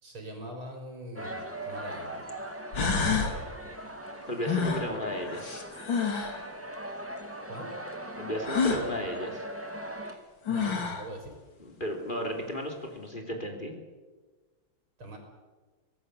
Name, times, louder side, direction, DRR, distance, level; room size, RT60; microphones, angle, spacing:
voice 1, 0.0-2.2 7.5-7.7 10.5-11.3 15.0-15.2, right 1 dB, 80° right, 3 dB, 4.9 m, -42 dB
sound 1, 1.2-1.3 2.3-2.4 2.7-3.4 4.4-6.4 8.4-8.9 10.1-10.2 10.5-11.1, left 5 dB, 65° left, 3.3 m, -29 dB
sound 2, 1.2-10.2, right 1 dB, 5° right, 2.1 m, -40 dB
voice 2, 4.3-5.6 8.2-9.4 11.6-13.7, equal, 25° left, 3 dB, 3.4 m, -34 dB
25.0 x 17.5 x 8.4 m, 1.3 s
omnidirectional pair, 2.3 m